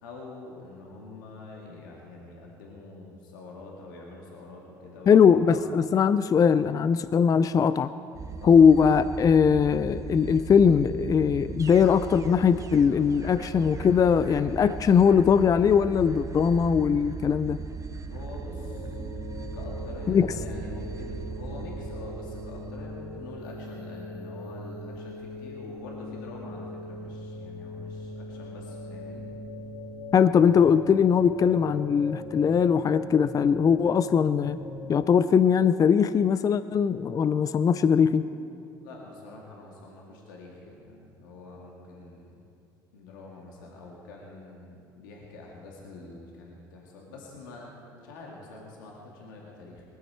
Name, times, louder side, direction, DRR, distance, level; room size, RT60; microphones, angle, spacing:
voice 1, 0.0-5.8 7.4-7.7 8.4-8.6 18.1-19.0 19.5-29.2 38.0-42.4 42.9-49.8, left 2 dB, 85° left, -2 dB, 2.2 m, -45 dB
voice 2, 5.1-7.9 8.4-17.6 20.1-20.3 30.1-34.6 34.9-38.3, left 7 dB, 35° left, 14 dB, 0.5 m, -20 dB
sound 1, 8.1-23.5, right 4 dB, 30° right, 1.0 m, -38 dB
sound 2, 18.6-34.9, left 1 dB, 55° left, 2.3 m, -40 dB
19.5 x 14.0 x 4.5 m, 2.6 s
hypercardioid pair, 70°, 11 cm